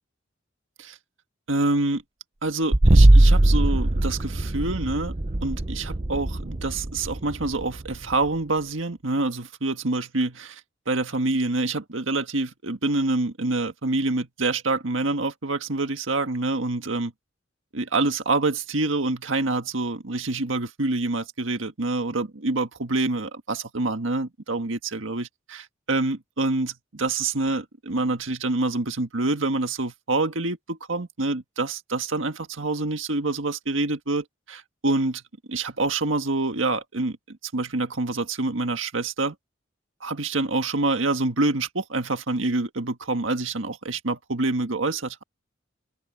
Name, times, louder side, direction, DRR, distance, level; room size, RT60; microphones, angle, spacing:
voice 1, 1.5-2.0 2.4-5.1 5.4-10.6 10.9-17.1 17.7-35.2 35.5-39.3 40.0-45.2, right 2 dB, 90° right, 1.7 m, -26 dB
sound 1, 2.7-8.3, right 1 dB, 30° right, 0.8 m, -20 dB
head